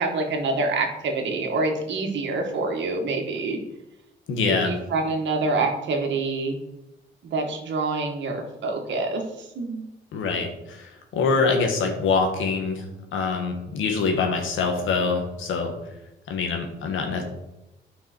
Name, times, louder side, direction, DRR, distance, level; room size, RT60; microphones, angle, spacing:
voice 1, 0.0-3.6 4.5-6.6 7.2-9.9, right 3 dB, 65° right, 2 dB, 2.0 m, -26 dB
voice 2, 4.3-4.7 10.1-12.9 13.1-15.7 16.3-17.2, left 4 dB, 80° left, 3 dB, 2.0 m, -24 dB
9.9 x 5.9 x 4.6 m, 0.91 s
cardioid pair, 90°, 20 cm